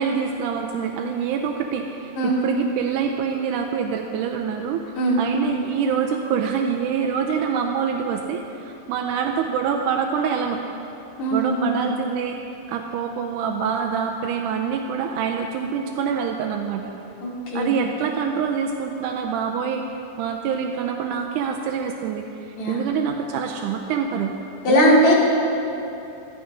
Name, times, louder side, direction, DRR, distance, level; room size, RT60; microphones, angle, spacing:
voice 1, 0.0-4.8 5.2-10.6 11.3-12.4 12.7-16.9 17.5-22.2 22.7-24.4 24.7-25.1, right 6 dB, 85° right, 3 dB, 2.1 m, -25 dB
voice 2, 11.2-11.7 17.2-17.7 22.6-22.8 24.6-25.1, equal, 45° left, -5 dB, 3.1 m, -20 dB
13.0 x 11.5 x 5.1 m, 2.9 s
omnidirectional pair, 3.6 m